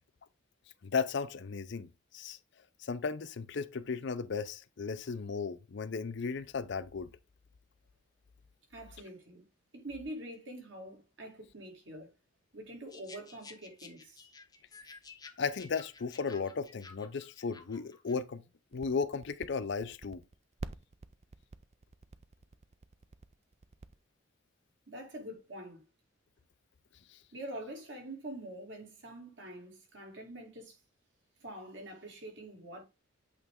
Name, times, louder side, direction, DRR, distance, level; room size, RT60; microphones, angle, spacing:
voice 1, 0.8-2.4 2.8-7.1 15.4-18.4 18.7-20.2, left 5 dB, 60° left, 0.5 m, -35 dB
voice 2, 8.7-9.4 9.7-12.1 12.5-14.3 24.9-25.8 27.3-30.8 31.4-32.8, right 1 dB, 60° right, 2.2 m, -45 dB
sound 1, 12.9-18.2, left 4 dB, 20° left, 0.7 m, -54 dB
sound 2, 18.7-23.9, right 3 dB, 35° right, 0.4 m, -46 dB
8.2 x 3.3 x 3.6 m
head